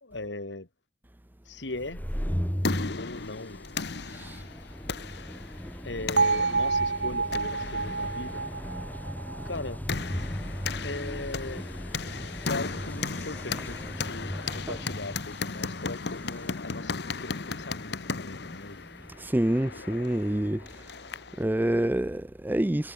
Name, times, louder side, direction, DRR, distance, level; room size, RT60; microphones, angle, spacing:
voice 1, 0.0-0.7 1.5-2.0 3.0-3.6 5.8-8.4 9.4-9.9 10.8-11.7 12.5-18.8, left 2 dB, 85° left, 2.3 m, -39 dB
sound 1, 1.7-19.1, equal, 10° left, 3.3 m, -38 dB
sound 2, 2.2-21.4, left 4 dB, 70° left, 1.1 m, -36 dB
Bell, 6.2-10.2, right 4 dB, 75° right, 1.7 m, -28 dB
voice 2, 19.2-20.7 21.4-22.9, right 1 dB, 10° right, 0.6 m, -27 dB
head